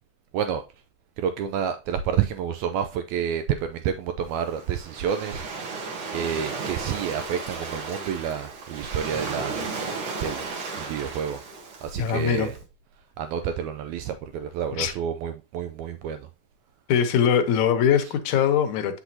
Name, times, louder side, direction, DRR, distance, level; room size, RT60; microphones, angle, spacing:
voice 1, 1.2-5.8 6.1-9.6 10.2-10.4 10.8-11.4 11.8-12.6 13.2-16.3 18.0-18.1, right 8 dB, 85° right, 1.6 m, -29 dB
Waves surf, 4.3-12.5, right 4 dB, 55° right, 1.6 m, -34 dB
voice 2, 12.0-12.5 14.8-14.9 16.9-19.0, left 8 dB, 70° left, 2.1 m, -22 dB
8.0 x 6.1 x 2.7 m
omnidirectional pair, 3.9 m